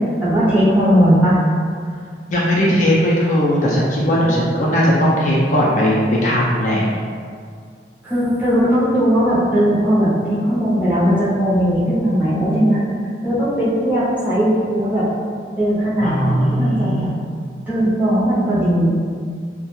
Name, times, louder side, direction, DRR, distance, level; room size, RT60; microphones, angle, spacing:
voice 1, 0.2-1.4 8.0-12.8 13.2-15.1 15.6-17.1 17.7-18.9, equal, 10° right, -10 dB, 0.6 m, -17 dB
voice 2, 2.3-6.8 16.0-17.1, equal, 40° left, -6 dB, 0.4 m, -17 dB
2.3 x 2.1 x 2.9 m, 2.1 s
head